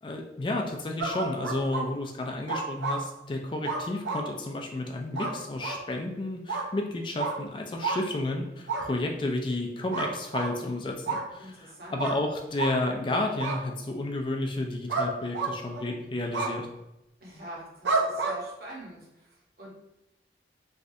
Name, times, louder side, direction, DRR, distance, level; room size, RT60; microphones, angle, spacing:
voice 1, 0.0-11.5 11.9-16.7, left 2 dB, 25° left, 2 dB, 0.3 m, -31 dB
sound 1, 1.0-1.8 2.5-3.0 3.6-4.3 5.1-5.3 5.6-5.8 6.5-6.7 7.2-7.3 7.8-8.0 8.7-8.9 9.9-10.5 11.1-11.2 12.0-12.2 12.6-12.8 13.4-13.6 14.9-15.1 15.3-15.9 16.3-16.5 17.8-18.4, right 4 dB, 80° right, 0.5 m, -29 dB
voice 2, 11.4-12.0 17.2-19.7, right 1 dB, 55° right, -4 dB, 0.9 m, -44 dB
3.1 x 2.5 x 2.6 m, 0.89 s
head